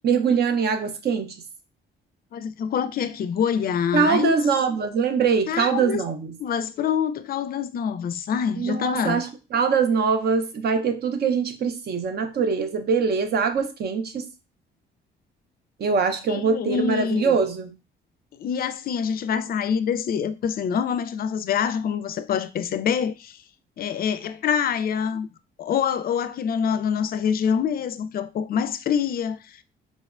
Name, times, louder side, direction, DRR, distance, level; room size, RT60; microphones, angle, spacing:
voice 1, 0.0-1.4 3.9-6.4 8.6-14.3 15.8-17.7, right 5 dB, 55° right, 0.6 m, -23 dB
voice 2, 2.3-4.3 5.5-6.0 6.4-9.2 16.3-17.4 18.3-23.4 23.8-25.3 25.6-29.6, left 7 dB, 50° left, 0.4 m, -25 dB
3.9 x 2.1 x 2.4 m
cardioid pair, 90°, 20 cm